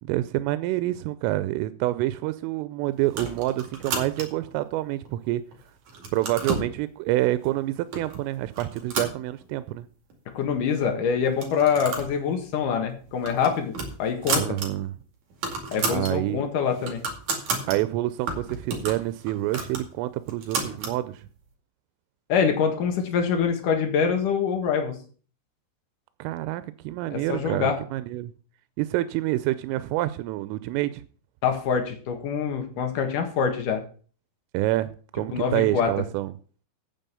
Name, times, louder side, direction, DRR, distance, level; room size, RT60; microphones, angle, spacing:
voice 1, 0.0-5.4 6.1-9.9 14.4-14.9 15.9-16.4 17.7-21.2 26.2-28.3 28.8-31.0 34.5-36.3, right 16 dB, 90° right, 14 dB, 3.2 m, -27 dB
sound 1, 3.1-4.5 5.1-5.6 5.9-6.7 7.4-7.5 7.9-8.2 8.5-9.8 10.1-10.2 10.4-10.5 11.3-12.1 12.5-12.6 13.0-14.7 15.0-15.1 15.3-16.1 16.5-17.8 18.3-21.0, right 4 dB, 45° right, 3.2 m, -32 dB
voice 2, 10.3-13.7 14.0-14.4 15.7-17.0 22.3-24.9 27.1-27.8 31.4-33.8 35.3-35.9, left 6 dB, 60° left, 5 dB, 2.4 m, -25 dB
9.1 x 7.8 x 6.9 m, 0.41 s
omnidirectional pair, 5.7 m